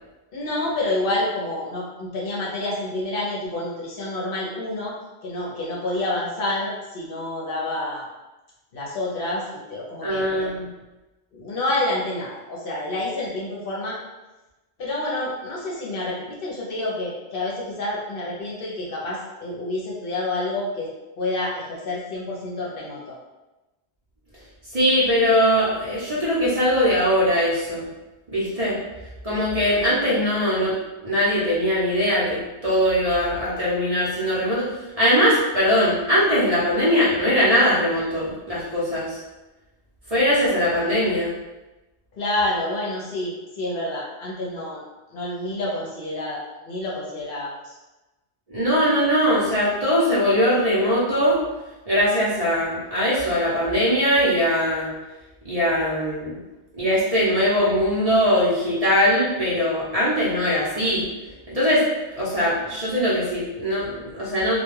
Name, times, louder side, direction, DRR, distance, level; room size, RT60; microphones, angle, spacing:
voice 1, 0.3-4.9 5.2-8.1 8.7-9.4 9.7-10.5 11.3-14.0 14.8-20.9 21.2-23.1 42.1-44.8 45.1-47.7, left 2 dB, 60° left, -5 dB, 0.7 m, -28 dB
voice 2, 10.0-10.7 24.7-27.9 28.3-28.8 29.2-30.8 31.0-34.7 35.0-39.2 40.1-41.3 48.5-51.4 51.9-54.9 55.4-56.4 56.8-61.1 61.5-61.8 62.2-64.6, equal, 40° right, -9 dB, 0.7 m, -21 dB
2.2 x 2.2 x 3.1 m, 1.1 s
omnidirectional pair, 1.1 m